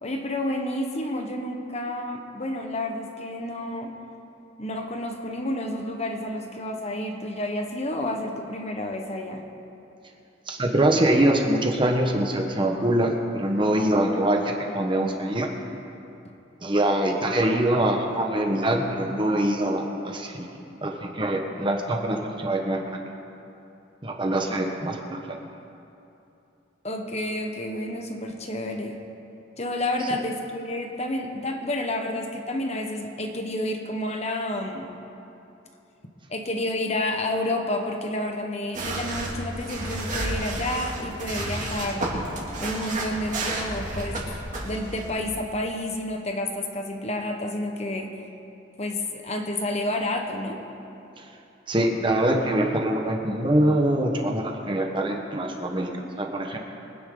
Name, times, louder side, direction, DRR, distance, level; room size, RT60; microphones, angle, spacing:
voice 1, 0.0-3.9 4.6-9.4 26.8-29.0 29.6-34.9 36.3-42.1 42.6-44.3 44.6-48.1 48.8-50.6, left 1 dB, 35° left, 3 dB, 1.2 m, -30 dB
voice 2, 10.5-15.5 16.6-20.5 20.8-22.8 24.0-25.2 51.7-55.9 56.2-56.6, right 1 dB, 25° right, 2 dB, 1.3 m, -24 dB
sound 1, 38.7-45.3, right 1 dB, 40° right, 2.5 m, -31 dB
23.5 x 10.0 x 3.9 m, 2.8 s
head